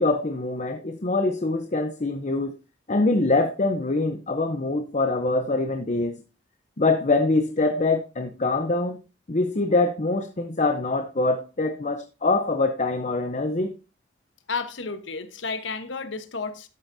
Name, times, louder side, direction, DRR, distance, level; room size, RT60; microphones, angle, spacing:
voice 1, 0.0-2.5 2.9-6.2 6.8-9.0 9.3-13.7, left 2 dB, 40° left, 0.7 m, -24 dB
voice 2, 14.5-16.7, left 4 dB, 70° left, 1.0 m, -32 dB
12.0 x 8.9 x 2.7 m
head